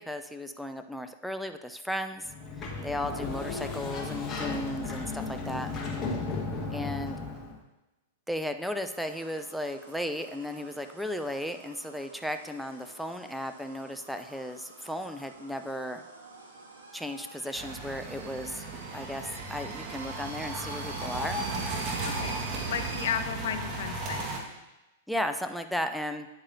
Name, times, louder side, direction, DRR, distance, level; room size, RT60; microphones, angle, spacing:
voice 1, 0.0-2.3 2.8-5.7 6.7-7.2 8.3-16.0 16.9-18.6 18.9-21.4 25.1-26.3, left 1 dB, ahead, 7 dB, 0.4 m, -35 dB
Sliding door, 2.2-7.6, left 4 dB, 25° left, 1.4 m, -35 dB
sound 1, 8.8-23.1, right 2 dB, 80° right, 1.4 m, -47 dB
sound 2, 17.6-24.4, right 3 dB, 35° right, 1.5 m, -35 dB
voice 2, 22.0-22.4 22.6-24.3, left 9 dB, 60° left, 11 dB, 0.5 m, -34 dB
9.0 x 8.6 x 2.7 m, 1.0 s
figure-of-eight pair, 100°, 0 cm